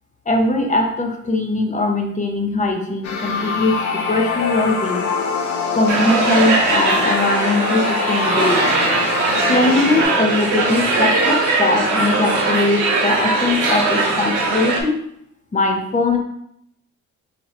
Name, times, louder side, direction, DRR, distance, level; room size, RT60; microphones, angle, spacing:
voice 1, 0.3-5.1 5.7-8.7 9.5-15.0 15.5-16.2, left 2 dB, 25° left, 3 dB, 0.9 m, -20 dB
sound 1, 3.0-10.0, left 5 dB, 75° left, 0.8 m, -24 dB
sound 2, 5.9-14.8, right 3 dB, 80° right, 1.4 m, -20 dB
5.2 x 2.8 x 3.3 m, 0.74 s
cardioid pair, 90°, 30 cm